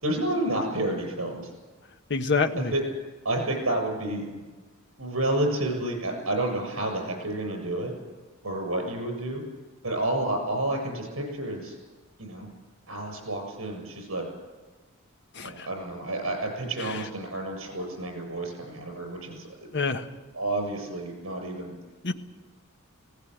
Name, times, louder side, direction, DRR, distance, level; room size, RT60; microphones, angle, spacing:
voice 1, 0.0-1.5 2.6-2.8 3.2-4.4 5.0-7.9 8.4-9.4 9.8-11.8 12.2-12.5 12.9-14.2 15.4-19.5 20.3-21.7, right 1 dB, 75° right, 3 dB, 7.3 m, -30 dB
voice 2, 2.1-2.7 15.3-15.7 16.8-16.9 19.7-20.1 22.0-22.1, left 4 dB, 55° left, 7 dB, 1.4 m, -26 dB
19.5 x 18.0 x 9.4 m, 1.3 s
head